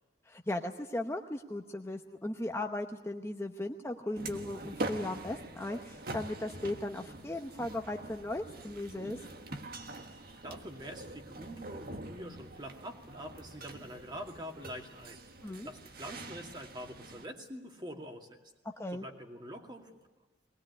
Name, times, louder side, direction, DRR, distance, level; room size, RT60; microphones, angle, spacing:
voice 1, 0.3-9.2 15.4-15.7 18.8-19.1, left 1 dB, 15° left, 3 dB, 0.9 m, -37 dB
sound 1, 4.2-17.3, right 2 dB, 55° right, 1.5 m, -44 dB
voice 2, 10.1-18.4 19.0-19.9, equal, 25° right, 2 dB, 2.4 m, -45 dB
20.5 x 19.5 x 9.7 m, 1.1 s
head